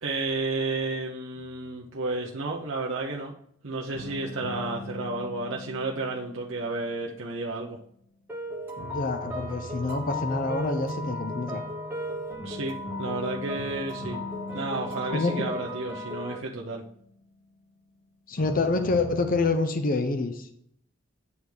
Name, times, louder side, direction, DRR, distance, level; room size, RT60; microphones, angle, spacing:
voice 1, 0.0-3.3 3.6-7.8 12.4-14.2 14.5-16.8, right 3 dB, 75° right, -1 dB, 0.8 m, -32 dB
sound 1, 1.3-2.5 3.9-7.9 8.8-17.6 18.4-19.5, left 1 dB, 75° left, 2.3 m, -41 dB
sound 2, 8.3-16.4, left 1 dB, 10° right, 1.4 m, -36 dB
voice 2, 8.9-11.6 15.1-15.3 18.3-20.5, left 3 dB, 45° left, 8 dB, 0.7 m, -27 dB
9.6 x 3.5 x 6.2 m, 0.68 s
head